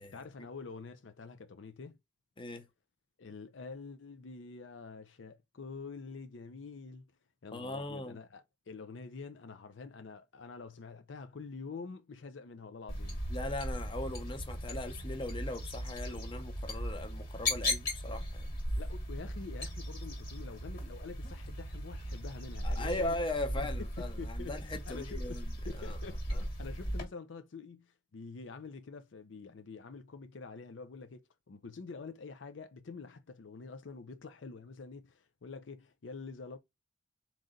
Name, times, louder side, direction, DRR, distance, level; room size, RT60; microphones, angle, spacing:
voice 1, 0.0-2.0 3.2-7.1 7.4-13.2 18.8-23.2 23.6-23.7 24.0-25.4 25.7-36.6, left 4 dB, 75° left, 0.5 m, -47 dB
voice 2, 7.5-8.2 13.3-18.5 22.6-25.5 25.8-26.0 26.3-26.4, left 2 dB, 25° left, 0.8 m, -39 dB
sound 1, 12.9-27.0, equal, 50° left, 2.0 m, -37 dB
3.9 x 3.0 x 3.7 m
head